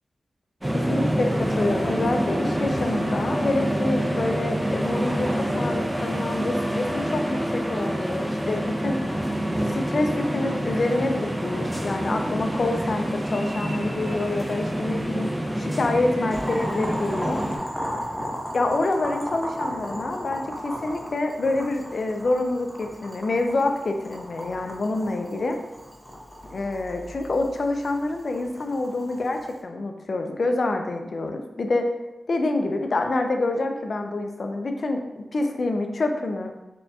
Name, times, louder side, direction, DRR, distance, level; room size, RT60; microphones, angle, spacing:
sound 1, 0.6-17.6, equal, 15° right, 0.5 m, -27 dB
voice 1, 0.7-9.0 9.7-17.4 18.5-25.6 26.5-31.9 32.3-36.5, left 2 dB, 60° left, 4 dB, 0.4 m, -27 dB
Boiling, 16.3-29.6, equal, 5° left, 0.9 m, -35 dB
4.2 x 2.3 x 2.7 m, 1.0 s
cardioid pair, 55°, 0 cm